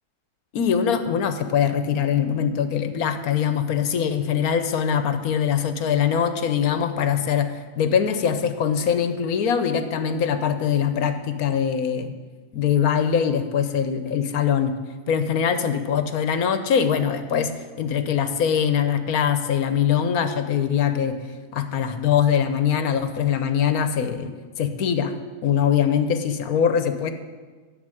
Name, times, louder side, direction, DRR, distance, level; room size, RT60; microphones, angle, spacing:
voice 1, 0.5-12.1 12.5-14.8 15.1-21.2 21.5-24.3 24.6-25.1 25.4-27.1, left 8 dB, 70° left, 9 dB, 1.3 m, -22 dB
11.0 x 6.9 x 9.0 m, 1.4 s
omnidirectional pair, 1.6 m